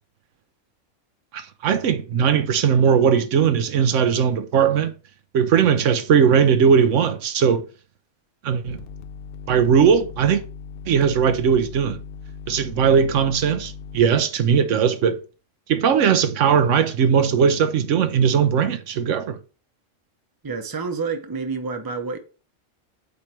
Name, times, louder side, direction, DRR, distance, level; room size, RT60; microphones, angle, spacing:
voice 1, 1.3-4.9 5.3-7.6 8.4-8.8 9.5-10.4 10.9-12.0 12.5-15.2 15.7-19.4, right 7 dB, 80° right, 1.0 m, -19 dB
sound 1, 8.7-14.2, left 6 dB, 60° left, 0.7 m, -39 dB
voice 2, 20.4-22.2, right 4 dB, 20° right, 0.7 m, -28 dB
8.3 x 3.2 x 4.5 m
omnidirectional pair, 1.3 m